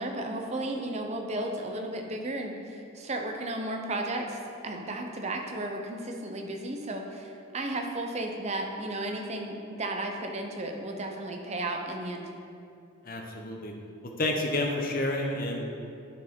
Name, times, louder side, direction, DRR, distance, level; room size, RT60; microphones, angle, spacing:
voice 1, 0.0-12.3, right 1 dB, 30° right, 3 dB, 0.5 m, -34 dB
voice 2, 13.0-13.7 14.0-15.6, left 1 dB, 40° left, 2 dB, 0.7 m, -30 dB
9.2 x 4.6 x 3.6 m, 2.6 s
head